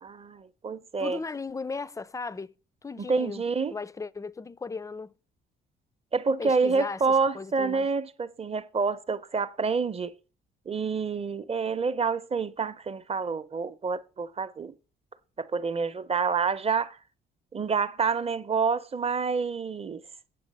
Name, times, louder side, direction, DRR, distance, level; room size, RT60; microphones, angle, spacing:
voice 1, 0.0-1.2 3.0-3.7 6.1-10.1 10.7-14.7 15.4-17.0 17.5-20.0, right 5 dB, 30° right, 0.8 m, -28 dB
voice 2, 1.0-2.5 2.8-3.4 3.7-5.1 6.4-7.9, left 4 dB, 15° left, 0.4 m, -36 dB
8.3 x 6.3 x 5.4 m
cardioid pair, 90°, 20 cm